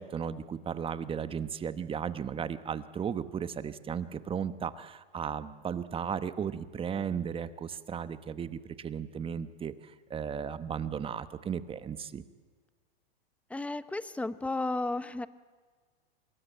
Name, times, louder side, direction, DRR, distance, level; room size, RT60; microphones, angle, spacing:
voice 1, 0.0-12.2, right 7 dB, 20° right, 13 dB, 1.1 m, -35 dB
voice 2, 13.5-15.3, left 2 dB, 5° left, 15 dB, 0.8 m, -33 dB
27.0 x 20.0 x 9.1 m, 1.5 s
hypercardioid pair, 120°, 30 cm